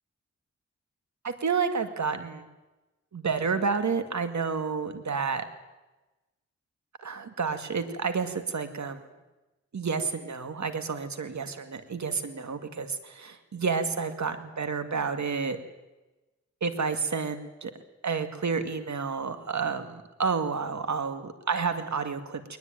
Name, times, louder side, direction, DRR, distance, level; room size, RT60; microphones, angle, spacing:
voice 1, 1.2-2.5 3.1-5.4 7.0-9.0 9.7-15.6 16.6-17.7 18.0-22.6, right 5 dB, 70° right, 9 dB, 2.2 m, -30 dB
21.0 x 20.0 x 9.2 m, 1.1 s
wide cardioid pair, 70°, 29 cm